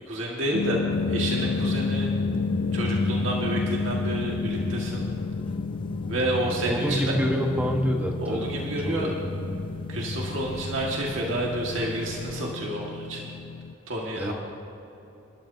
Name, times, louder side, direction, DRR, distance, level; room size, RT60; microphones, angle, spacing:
voice 1, 0.1-0.8 1.1-2.1 2.7-5.1 6.1-7.1 8.2-9.1 9.9-13.3 13.9-14.3, right 1 dB, 80° right, -3 dB, 1.9 m, -29 dB
sound 1, 0.5-13.7, left 5 dB, 80° left, 0.3 m, -32 dB
sound 2, 0.9-12.4, left 1 dB, 25° left, 0.6 m, -33 dB
voice 2, 6.6-9.1 14.2-14.3, equal, 10° right, 1 dB, 1.3 m, -27 dB
27.5 x 12.5 x 2.8 m, 2.9 s
head